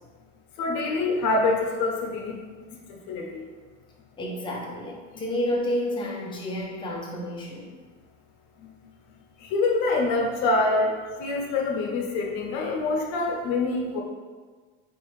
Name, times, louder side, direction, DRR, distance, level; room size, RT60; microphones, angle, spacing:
voice 1, 0.6-2.4 2.9-3.4 5.1-5.2 8.6-8.7 9.4-14.0, left 3 dB, 65° left, 0 dB, 0.8 m, -25 dB
voice 2, 4.2-7.7, equal, 15° left, -3 dB, 0.6 m, -30 dB
4.2 x 2.4 x 3.1 m, 1.4 s
cardioid pair, 135°, 32 cm